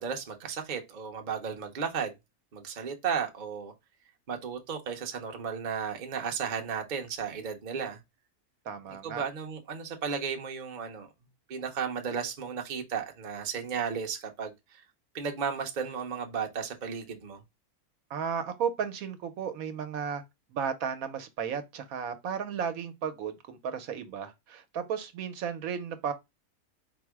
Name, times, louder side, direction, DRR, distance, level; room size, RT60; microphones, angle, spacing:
voice 1, 0.0-2.1 2.5-3.7 4.3-8.0 9.0-11.1 11.5-14.8 15.1-17.4, right 6 dB, 40° right, 0.7 m, -34 dB
voice 2, 8.7-9.2 18.1-20.2 20.5-26.1, right 7 dB, 75° right, 1.1 m, -34 dB
4.3 x 2.0 x 4.5 m
omnidirectional pair, 1.5 m